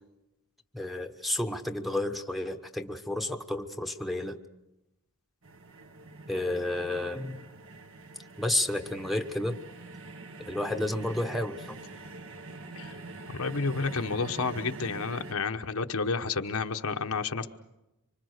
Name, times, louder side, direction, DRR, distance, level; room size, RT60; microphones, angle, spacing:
voice 1, 0.7-4.4 6.3-7.4 8.4-9.6 10.4-11.8, left 1 dB, ahead, 6 dB, 1.1 m, -31 dB
sound 1, 5.4-15.3, right 3 dB, 60° right, 1.5 m, -45 dB
voice 2, 13.3-17.5, left 4 dB, 70° left, 6 dB, 1.1 m, -30 dB
25.0 x 25.0 x 6.6 m, 0.96 s
head